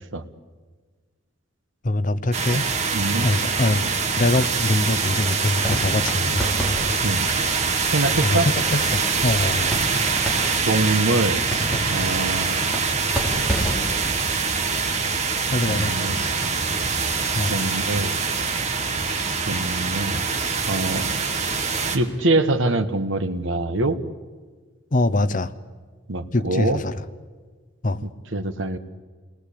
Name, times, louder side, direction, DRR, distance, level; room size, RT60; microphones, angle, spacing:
voice 1, 1.8-2.7 3.2-3.9 4.2-6.5 8.2-9.7 15.5-16.0 16.2-16.3 17.3-17.6 24.9-25.5 26.3-27.0 27.8-28.0, left 2 dB, 40° left, 12 dB, 0.8 m, -23 dB
sound 1, 2.3-22.0, right 5 dB, 35° right, 1.6 m, -24 dB
voice 2, 2.9-3.3 7.0-7.2 7.9-8.5 10.6-11.4 11.9-12.6 15.7-16.2 17.5-18.2 19.5-20.2 20.7-21.0 21.9-24.0 26.1-26.8 28.0-28.8, right 2 dB, 70° right, 9 dB, 1.3 m, -24 dB
sound 2, 5.6-19.7, equal, ahead, 4.0 m, -33 dB
28.0 x 20.0 x 8.5 m, 1.5 s
head